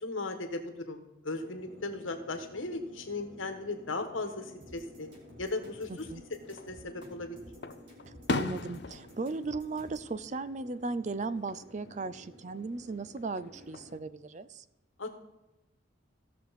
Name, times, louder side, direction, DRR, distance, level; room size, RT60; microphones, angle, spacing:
voice 1, 0.0-5.1 5.4-6.1 6.5-7.4 15.0-15.1, left 3 dB, 80° left, 6 dB, 1.4 m, -37 dB
sound 1, 1.3-14.0, equal, 75° right, 2.8 m, -54 dB
sound 2, 4.6-10.1, right 1 dB, 60° right, 3.1 m, -54 dB
voice 2, 5.9-6.2 8.3-14.6, right 3 dB, 35° right, 15 dB, 0.4 m, -36 dB
Fireworks, 6.4-7.1 7.6-10.7 11.1-11.6 13.2-14.0, left 3 dB, 55° left, 0.6 m, -38 dB
17.0 x 6.5 x 4.1 m, 0.98 s
head